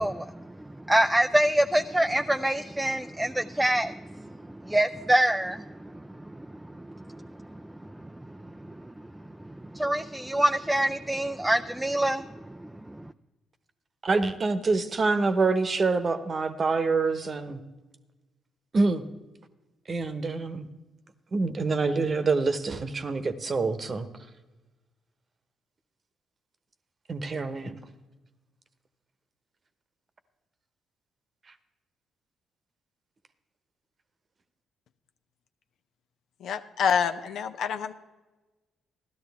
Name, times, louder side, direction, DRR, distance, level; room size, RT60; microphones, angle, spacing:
voice 1, 0.0-6.5 6.7-7.6 7.9-8.4 8.7-13.0, right 1 dB, 10° right, 6 dB, 0.4 m, -27 dB
voice 2, 14.0-17.6 18.7-19.0 19.9-20.7 21.3-24.1 27.1-27.8, right 3 dB, 45° right, 11 dB, 1.0 m, -26 dB
voice 3, 36.4-37.9, left 7 dB, 70° left, 9 dB, 0.6 m, -27 dB
14.5 x 12.0 x 3.5 m, 1.2 s
hypercardioid pair, 50°, 0 cm